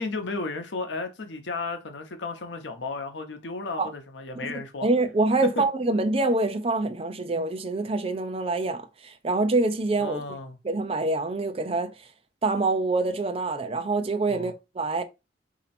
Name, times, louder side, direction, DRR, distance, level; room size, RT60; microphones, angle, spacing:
voice 1, 0.0-4.9 10.0-10.6 14.3-14.5, left 3 dB, 85° left, 0.8 m, -34 dB
voice 2, 4.3-10.2 10.6-11.9 12.4-15.0, right 3 dB, 35° right, 0.6 m, -26 dB
4.2 x 2.8 x 4.2 m
head